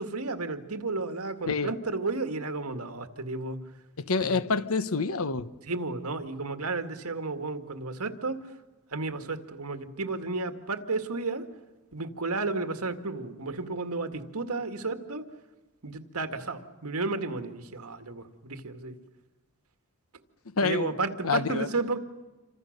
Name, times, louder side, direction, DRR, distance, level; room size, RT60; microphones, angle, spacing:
voice 1, 0.0-3.6 4.3-4.4 5.6-8.4 8.9-11.5 11.9-15.2 15.8-19.0 20.6-22.0, right 3 dB, 85° right, 2.0 m, -32 dB
voice 2, 4.1-5.5 20.6-20.9 21.2-21.7, left 4 dB, 70° left, 1.1 m, -27 dB
28.0 x 25.5 x 6.6 m
head